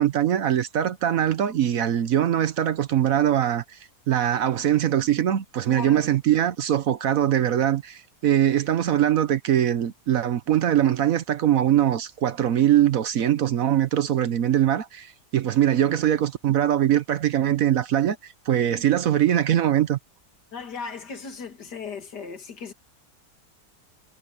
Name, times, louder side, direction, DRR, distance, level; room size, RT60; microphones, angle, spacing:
voice 1, 0.0-3.8 4.1-20.0, right 11 dB, 60° right, 1.1 m, -22 dB
voice 2, 5.7-6.1 8.3-8.4 20.5-22.7, left 5 dB, 80° left, 2.7 m, -36 dB
omnidirectional pair, 1.8 m